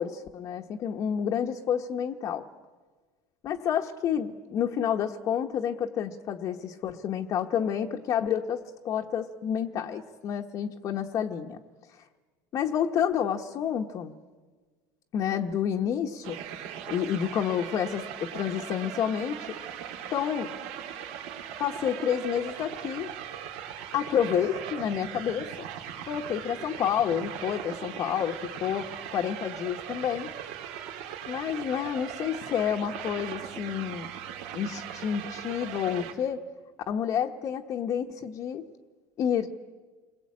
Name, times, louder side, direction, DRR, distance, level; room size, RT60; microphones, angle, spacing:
voice 1, 0.0-2.4 3.4-8.6 8.8-11.6 11.9-12.0 12.5-14.1 15.1-16.4 16.9-19.5 20.1-20.5 21.6-23.1 23.9-25.5 26.1-30.3 31.3-34.1 34.5-36.4 36.9-38.6 39.2-39.5, left 8 dB, 35° left, 2 dB, 1.1 m, -29 dB
sound 1, 16.2-36.1, right 9 dB, 70° right, 3.4 m, -39 dB
28.5 x 22.0 x 8.6 m, 1.4 s
cardioid pair, 155°, 9 cm